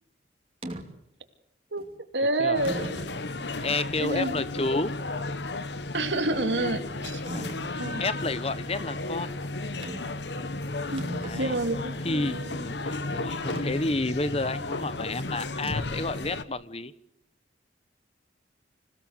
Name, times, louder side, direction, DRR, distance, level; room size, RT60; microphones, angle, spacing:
sound 1, 0.6-0.9 1.8-1.9 2.6-3.2 3.8-3.9 7.3-7.7 9.8-10.2 10.5-10.6 10.8-11.9 13.5-13.7 15.6-16.0, right 1 dB, 30° right, 2.7 m, -38 dB
voice 1, 2.1-3.1 4.0-4.4 5.9-7.2 7.8-8.0 10.9-11.0 11.3-12.6, right 2 dB, 80° right, 7 dB, 2.6 m, -28 dB
sound 2, 2.5-16.4, left 2 dB, 75° left, 1.3 m, -34 dB
voice 2, 3.6-5.0 7.3-7.6 8.0-9.3 11.2-11.6 12.0-16.9, left 2 dB, 35° left, 15 dB, 1.1 m, -30 dB
26.5 x 17.0 x 8.1 m, 0.76 s
head